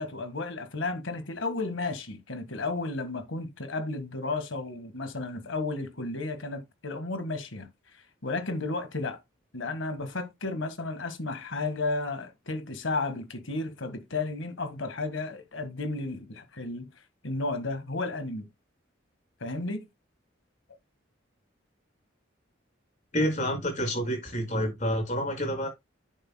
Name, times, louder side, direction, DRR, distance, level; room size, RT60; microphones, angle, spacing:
voice 1, 0.0-7.7 8.2-9.2 9.5-16.9 17.2-18.5 19.4-19.9, left 3 dB, 80° left, 1.6 m, -33 dB
voice 2, 23.1-25.7, equal, 40° left, 4.9 m, -28 dB
10.0 x 7.4 x 2.2 m
head